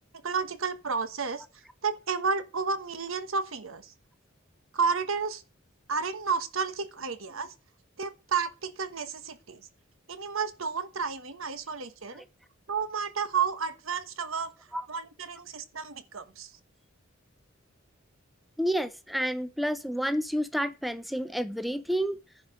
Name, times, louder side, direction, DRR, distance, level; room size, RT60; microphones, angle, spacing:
voice 1, 0.2-1.4 1.8-3.9 4.7-5.4 5.9-7.5 8.0-9.7 10.1-12.2 12.7-14.5 14.9-16.5, right 5 dB, 75° right, 1.2 m, -31 dB
voice 2, 18.6-22.2, equal, ahead, 0.5 m, -30 dB
10.5 x 4.9 x 6.3 m
head